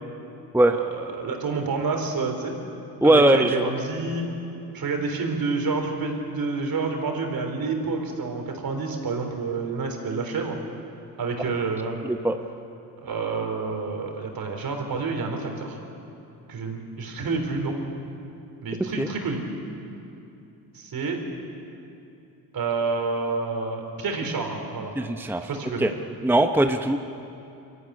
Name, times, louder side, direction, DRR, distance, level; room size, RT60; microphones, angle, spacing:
voice 1, 0.6-2.5 3.0-4.3 4.7-10.6 11.2-12.0 13.0-15.8 16.5-17.7 18.6-19.4 20.7-21.2 22.5-24.9 25.4-25.9, right 4 dB, 60° right, 3 dB, 4.0 m, -28 dB
voice 2, 3.0-3.7 12.0-12.4 19.0-19.1 25.0-25.5 25.8-25.9 26.2-27.0, right 1 dB, 5° right, 6 dB, 0.9 m, -20 dB
24.0 x 14.0 x 9.7 m, 2.7 s
cardioid pair, 70°, 40 cm